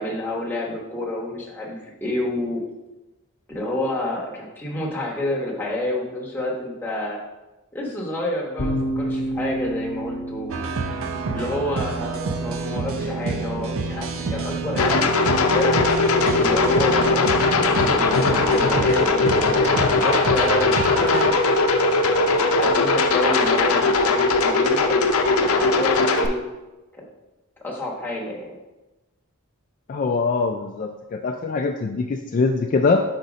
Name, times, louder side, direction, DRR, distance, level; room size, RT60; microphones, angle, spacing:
voice 1, 0.0-2.6 3.5-7.2 7.7-10.7 11.3-15.8 16.3-21.6 22.6-25.1 25.3-26.4 26.9-27.0 27.6-28.5, left 1 dB, 10° left, -4 dB, 1.1 m, -29 dB
sound 1, 8.6-18.0, equal, 65° left, 1.0 m, -33 dB
sound 2, 10.5-21.3, right 4 dB, 70° right, 0.5 m, -28 dB
sound 3, 14.8-26.3, left 3 dB, 90° left, 0.6 m, -19 dB
voice 2, 29.9-33.0, left 4 dB, 40° left, 3 dB, 0.3 m, -23 dB
5.2 x 4.1 x 4.9 m, 1.1 s
head